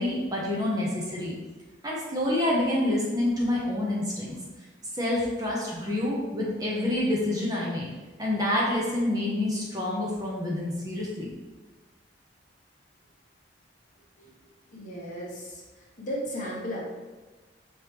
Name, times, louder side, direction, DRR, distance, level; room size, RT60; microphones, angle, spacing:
voice 1, 0.0-1.3 1.8-4.4 4.9-7.9 8.2-11.3, left 1 dB, 20° right, -4 dB, 0.7 m, -27 dB
voice 2, 14.7-15.6 16.0-16.9, equal, 40° left, -4 dB, 1.0 m, -35 dB
4.3 x 3.4 x 3.1 m, 1.2 s
head